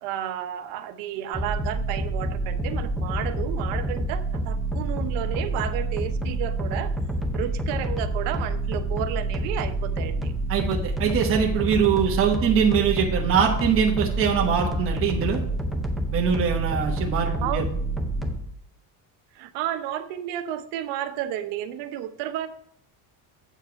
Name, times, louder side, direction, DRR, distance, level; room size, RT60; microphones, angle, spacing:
voice 1, 0.0-6.9 7.3-10.3 17.2-17.6 19.3-22.5, right 11 dB, 85° right, 10 dB, 0.9 m, -32 dB
sound 1, 1.3-18.4, right 1 dB, ahead, 0.5 m, -28 dB
voice 2, 10.5-15.4 16.1-17.6, right 7 dB, 35° right, 0 dB, 1.2 m, -23 dB
8.2 x 4.6 x 5.7 m, 0.68 s
cardioid pair, 170°, 40 cm